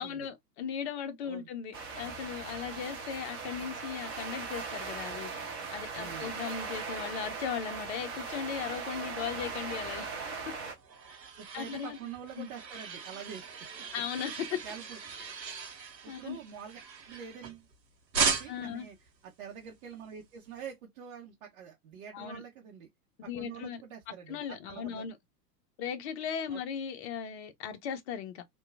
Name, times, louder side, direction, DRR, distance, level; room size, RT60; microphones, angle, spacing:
voice 1, 0.0-10.1 10.4-10.5 11.5-12.0 12.4-12.5 13.9-14.6 16.1-16.4 18.5-18.9 22.1-22.4 23.2-23.8 24.3-25.2 25.8-28.4, left 8 dB, 40° left, 0.6 m, -37 dB
sound 1, 1.7-10.7, right 5 dB, 20° right, 0.3 m, -39 dB
voice 2, 5.9-6.3 11.4-13.4 13.9-14.0 14.6-15.0 15.3-15.4 15.9-17.7 18.4-19.0 19.2-22.9 23.4-25.0 26.5-26.6, right 8 dB, 50° right, 0.8 m, -46 dB
sound 2, 10.5-17.7 18.1-18.8, right 6 dB, 85° right, 1.0 m, -37 dB
2.8 x 2.3 x 2.4 m
figure-of-eight pair, 105°, 50 cm